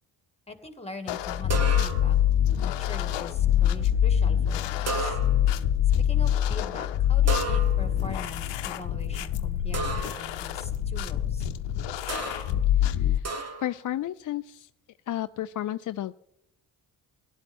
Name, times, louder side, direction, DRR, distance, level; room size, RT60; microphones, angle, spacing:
voice 1, 0.5-2.2 2.6-5.2 5.9-11.5, left 2 dB, 15° left, 7 dB, 2.0 m, -42 dB
sound 1, 1.1-13.2, left 10 dB, 80° left, 0.8 m, -25 dB
sound 2, 1.5-2.2 4.9-5.6 7.3-8.0 9.7-10.3 12.1-12.6 13.2-13.8, right 4 dB, 35° right, 1.4 m, -33 dB
sound 3, 2.9-5.9 6.2-8.8, left 1 dB, 15° right, 3.2 m, -47 dB
voice 2, 12.8-13.3 13.6-14.7 15.1-16.1, left 13 dB, 50° left, 11 dB, 0.4 m, -32 dB
17.0 x 11.5 x 3.5 m, 0.80 s
supercardioid pair, 60°, 42 cm